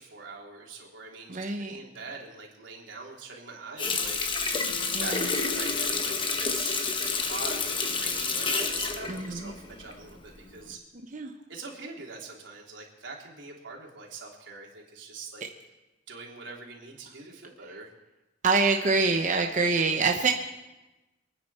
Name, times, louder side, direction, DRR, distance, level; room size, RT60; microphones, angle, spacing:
voice 1, 0.0-4.5 4.9-10.8 11.5-15.4 16.1-17.9, right 3 dB, 90° right, -2 dB, 3.5 m, -43 dB
voice 2, 1.3-1.8 4.9-5.2 9.1-9.5 11.1-11.3 18.4-20.3, right 4 dB, 40° right, 3 dB, 0.9 m, -25 dB
Water tap faucet, 3.8-10.2 10.6-10.7, left 4 dB, 25° left, 1.1 m, -29 dB
27.5 x 9.8 x 4.3 m, 1.0 s
head